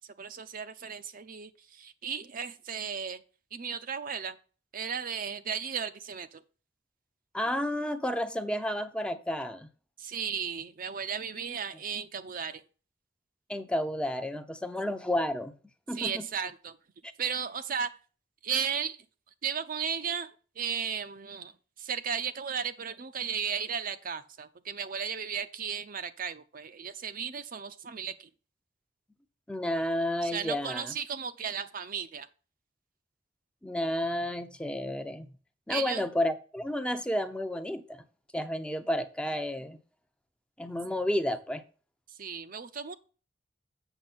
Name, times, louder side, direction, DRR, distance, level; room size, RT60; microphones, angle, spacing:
voice 1, 0.2-3.2 3.5-4.4 4.7-6.4 10.0-12.6 15.9-16.8 17.2-17.9 18.4-19.0 19.4-20.3 20.6-21.5 21.8-28.3 30.2-32.3 35.7-36.1 42.2-42.9, right 7 dB, 50° right, 10 dB, 0.6 m, -35 dB
voice 2, 7.3-9.7 13.5-15.5 15.9-16.3 29.5-30.9 33.6-35.3 35.7-38.0 38.3-39.8 40.6-41.6, left 1 dB, 5° left, 8 dB, 0.7 m, -31 dB
8.0 x 6.4 x 4.2 m, 0.37 s
head